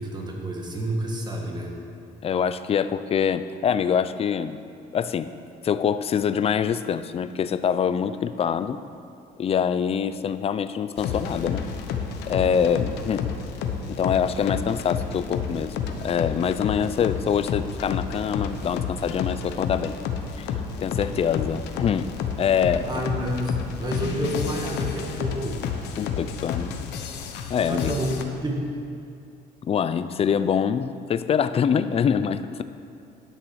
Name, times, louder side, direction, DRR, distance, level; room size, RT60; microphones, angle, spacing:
voice 1, 0.0-1.7 22.9-25.6 27.7-28.6, right 1 dB, 25° right, 0 dB, 1.9 m, -29 dB
voice 2, 2.2-4.6 4.9-5.3 5.6-8.8 9.4-11.6 12.3-13.3 13.9-15.8 16.0-20.0 20.4-23.0 26.0-26.7 27.2-27.3 27.5-27.9 29.6-32.6, left 7 dB, 35° left, 12 dB, 0.5 m, -25 dB
sound 1, 11.0-28.2, left 6 dB, 80° left, 0.9 m, -31 dB
11.0 x 7.3 x 6.3 m, 2.5 s
cardioid pair, 110°, 17 cm